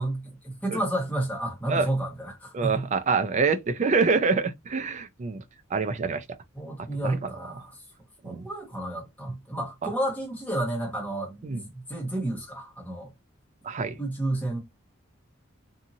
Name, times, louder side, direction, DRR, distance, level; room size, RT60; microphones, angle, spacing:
voice 1, 0.0-2.9 6.5-7.8 8.2-13.1 14.0-14.6, right 1 dB, 10° left, 1.2 m, -31 dB
voice 2, 2.5-5.4 5.7-6.2 7.0-7.3 8.2-8.5 11.4-11.6 13.6-14.0, right 4 dB, 35° right, 0.3 m, -26 dB
2.7 x 2.6 x 2.6 m
head